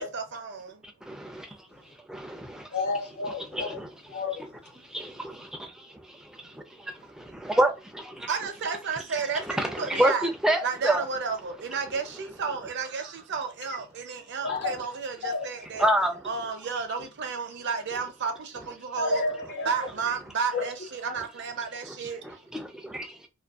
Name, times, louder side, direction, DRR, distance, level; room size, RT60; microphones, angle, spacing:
voice 1, 0.0-0.8 8.3-10.3 10.6-15.9 16.3-19.2 19.6-22.4, right 5 dB, 60° right, 0.5 m, -32 dB
voice 2, 0.8-2.7 3.5-3.9 4.8-8.3 9.3-11.0 15.8-16.3 21.2-21.3 22.2-23.3, right 1 dB, 5° right, 0.3 m, -29 dB
voice 3, 2.7-3.8 4.1-4.5 14.4-14.8 15.2-15.5 19.0-19.9 20.5-20.7 21.1-21.2, left 3 dB, 55° left, 0.5 m, -30 dB
2.5 x 2.1 x 2.3 m
head